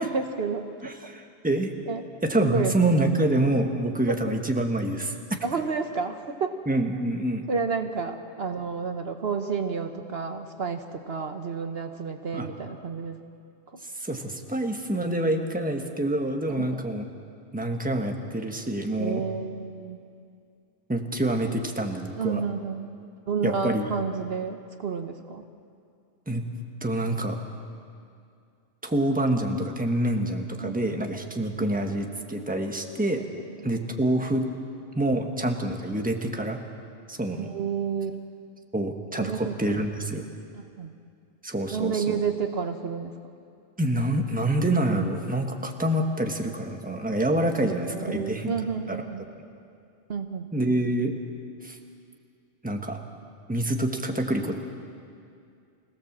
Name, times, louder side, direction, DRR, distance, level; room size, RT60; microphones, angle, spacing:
voice 1, 0.0-0.7 1.9-2.0 2.4-2.9 5.4-6.5 7.5-13.2 16.5-16.8 19.0-20.0 22.2-22.9 23.3-25.4 30.6-31.0 31.5-31.9 37.3-38.2 39.2-39.8 40.5-40.9 41.7-43.1 47.6-49.2 50.1-50.5, right 5 dB, 60° right, 6 dB, 1.2 m, -30 dB
voice 2, 0.8-1.7 2.2-5.2 6.7-7.4 12.3-12.5 13.8-17.1 17.5-19.2 20.9-22.4 23.4-23.8 26.3-26.5 26.8-27.4 28.8-33.2 33.6-34.5 34.9-36.6 37.1-37.5 38.7-40.2 41.4-42.2 43.8-48.5 48.9-49.0 50.5-51.1 51.6-51.8 52.6-53.0 53.5-54.5, right 1 dB, 5° right, 3 dB, 1.4 m, -26 dB
25.5 x 17.0 x 7.4 m, 2.4 s
omnidirectional pair, 1.2 m